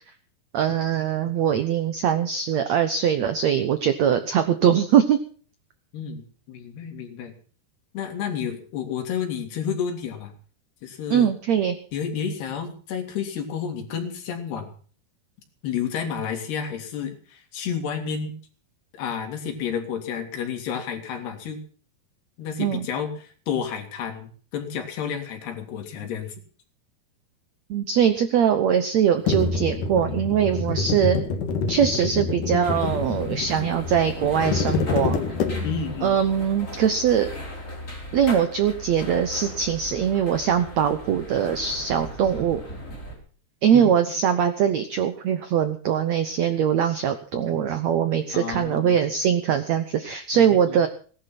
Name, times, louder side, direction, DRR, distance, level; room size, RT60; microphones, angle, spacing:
voice 1, 0.5-5.2 11.1-11.8 22.6-22.8 27.7-31.2 31.7-35.2 36.0-37.3 38.1-42.6 43.6-50.9, right 8 dB, 80° right, 9 dB, 1.6 m, -22 dB
voice 2, 5.9-7.3 7.9-10.3 10.8-11.3 11.9-14.7 15.6-18.4 19.0-21.6 22.4-26.4 35.6-36.2 43.7-43.9 48.3-49.0 50.3-50.8, left 7 dB, 85° left, 4 dB, 4.5 m, -31 dB
sound 1, 29.3-36.0, left 4 dB, 60° left, 3.2 m, -27 dB
sound 2, 32.6-43.1, equal, 20° left, 4.8 m, -38 dB
18.0 x 11.0 x 5.9 m, 0.43 s
omnidirectional pair, 4.6 m